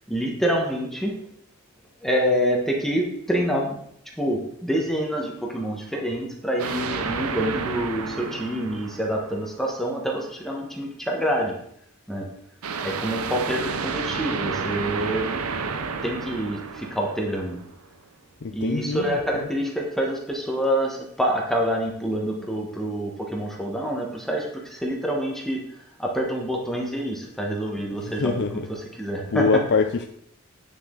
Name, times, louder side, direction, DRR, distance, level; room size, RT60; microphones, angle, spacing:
voice 1, 0.1-1.1 2.0-3.8 4.2-11.5 12.1-12.2 12.8-15.3 16.0-17.6 18.5-25.6 26.0-29.6, equal, ahead, -1 dB, 1.5 m, -27 dB
sound 1, 6.6-9.7 12.6-17.8, right 5 dB, 80° right, 0.8 m, -31 dB
voice 2, 18.4-19.2 28.0-28.7 29.3-30.1, left 4 dB, 55° left, 4 dB, 0.5 m, -24 dB
9.0 x 6.8 x 3.9 m, 0.70 s
head